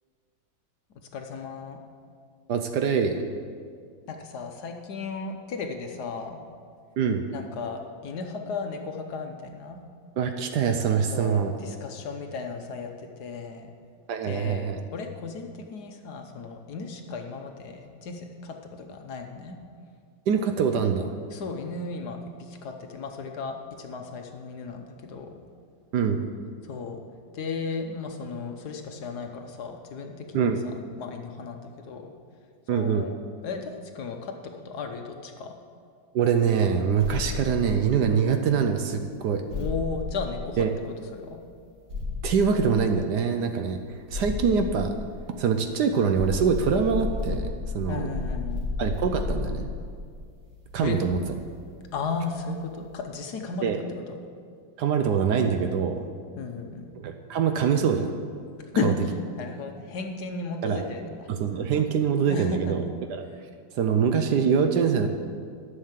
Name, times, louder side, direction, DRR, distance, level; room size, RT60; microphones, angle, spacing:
voice 1, 1.1-1.8 4.1-6.4 7.3-9.8 11.1-13.7 14.2-19.6 21.3-25.4 26.6-27.0 27.3-32.1 32.7-33.2 33.4-35.6 39.5-41.4 47.9-48.7 50.8-51.0 51.9-54.2 56.4-56.9 58.7-61.3 62.3-62.9, left 4 dB, 65° left, 4 dB, 1.3 m, -35 dB
voice 2, 2.5-3.3 7.0-7.3 10.2-11.5 14.1-14.8 20.3-21.1 25.9-26.2 30.3-30.6 32.7-33.1 36.1-39.4 40.6-40.7 42.2-43.8 44.1-44.9 45.4-48.1 48.8-49.7 50.7-51.2 53.6-53.8 54.8-56.0 56.9-58.1 58.8-58.9 60.6-60.8 61.3-62.8 63.1-63.2 63.8-65.1, right 6 dB, 70° right, 6 dB, 1.1 m, -24 dB
sound 1, 37.0-38.5 39.5-41.1 41.9-43.3 44.1-45.7 46.2-51.4, left 3 dB, 50° right, 3.3 m, -33 dB
11.0 x 6.5 x 7.3 m, 2.1 s
omnidirectional pair, 2.1 m